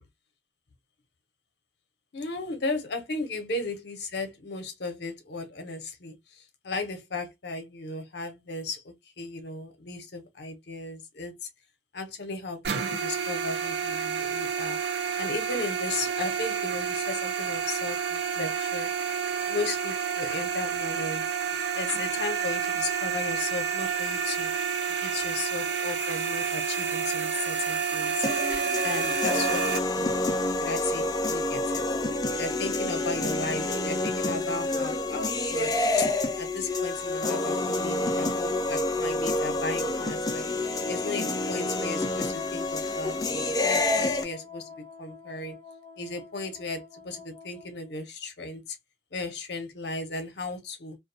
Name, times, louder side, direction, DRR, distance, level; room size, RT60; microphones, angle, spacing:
voice 1, 2.1-11.5 11.9-14.8 15.2-18.9 19.5-21.2 21.7-24.5 25.0-28.3 28.8-30.1 30.6-31.8 32.4-40.4 40.9-45.6 46.0-48.8 49.1-51.0, left 3 dB, 60° left, 0.7 m, -35 dB
sound 1, 12.6-29.8, right 7 dB, 60° right, 0.5 m, -29 dB
sound 2, 28.2-44.2, left 2 dB, 20° left, 0.4 m, -28 dB
Wind instrument woodwind instrument, 40.6-47.9, left 6 dB, 20° right, 0.8 m, -44 dB
2.3 x 2.2 x 2.6 m
head